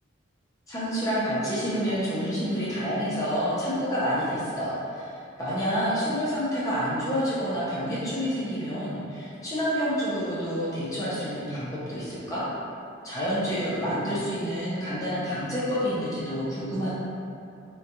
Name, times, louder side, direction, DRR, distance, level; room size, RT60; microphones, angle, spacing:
voice 1, 0.7-12.4 13.0-16.9, equal, 15° left, -10 dB, 0.5 m, -28 dB
3.6 x 2.2 x 2.9 m, 2.6 s
head